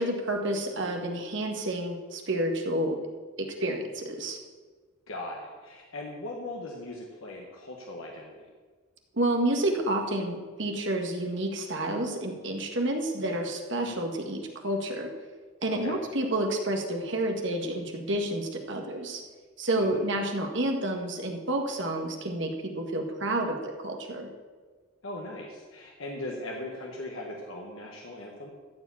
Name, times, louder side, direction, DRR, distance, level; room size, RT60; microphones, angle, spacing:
voice 1, 0.0-3.0 3.6-4.4 9.1-15.1 15.6-19.2 19.6-24.3, right 1 dB, 55° right, 3 dB, 1.5 m, -29 dB
voice 2, 5.1-8.5 15.7-16.0 19.7-20.1 25.0-28.5, left 1 dB, 75° left, -1 dB, 1.5 m, -39 dB
14.0 x 5.0 x 8.5 m, 1.4 s
head